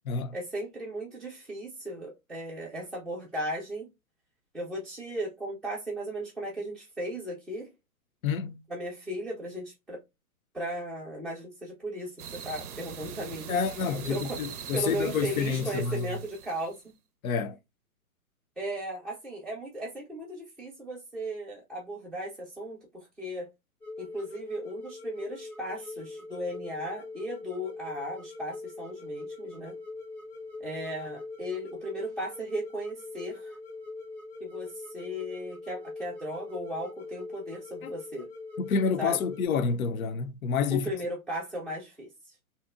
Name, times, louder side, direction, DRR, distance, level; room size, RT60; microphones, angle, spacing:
voice 1, 0.3-3.9 4.5-7.7 8.7-10.0 10.5-13.6 14.0-14.4 14.7-16.9 18.6-23.5 24.0-29.7 30.6-33.6 34.4-38.3 39.0-39.2 40.7-42.1, equal, ahead, 0.4 m, -36 dB
voice 2, 8.2-8.6 13.5-16.1 17.2-17.6 37.8-37.9 38.6-40.9, left 5 dB, 70° left, 0.5 m, -29 dB
sound 1, 12.2-16.8, right 7 dB, 85° right, 0.5 m, -42 dB
sound 2, 23.8-39.5, left 3 dB, 90° left, 1.3 m, -42 dB
2.7 x 2.0 x 2.3 m
hypercardioid pair, 130°, 43 cm